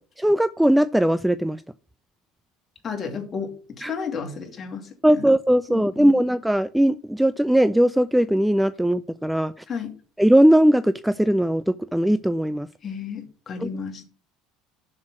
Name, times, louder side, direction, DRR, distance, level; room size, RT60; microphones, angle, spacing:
voice 1, 0.2-1.6 3.8-3.9 5.0-9.5 10.2-12.7 13.6-13.7, right 1 dB, 5° right, 15 dB, 0.4 m, -19 dB
voice 2, 2.8-3.5 3.8-5.3 5.7-6.1 9.7-9.9 12.8-14.0, left 6 dB, 30° left, 3 dB, 2.7 m, -32 dB
7.1 x 6.4 x 6.0 m, 0.39 s
figure-of-eight pair, 65°, 0 cm